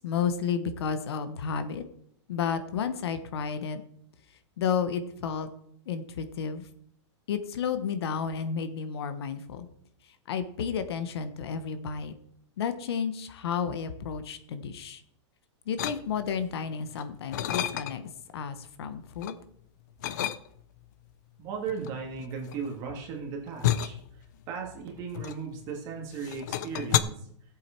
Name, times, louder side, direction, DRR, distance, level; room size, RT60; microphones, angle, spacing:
voice 1, 0.0-1.9 2.3-3.8 4.6-5.5 5.9-6.6 7.3-9.7 10.0-12.1 12.6-15.0 15.7-18.0 18.3-19.4, left 6 dB, 60° left, 10 dB, 1.2 m, -32 dB
sound 1, 15.8-16.5 16.9-18.2 18.6-19.4 20.0-20.8 21.7-25.8 26.1-27.0, left 12 dB, 40° left, 0.5 m, -31 dB
voice 2, 21.4-24.0 24.5-27.2, right 5 dB, 25° right, 1 dB, 2.1 m, -36 dB
16.5 x 7.7 x 4.5 m, 0.67 s
supercardioid pair, 180°, 15 cm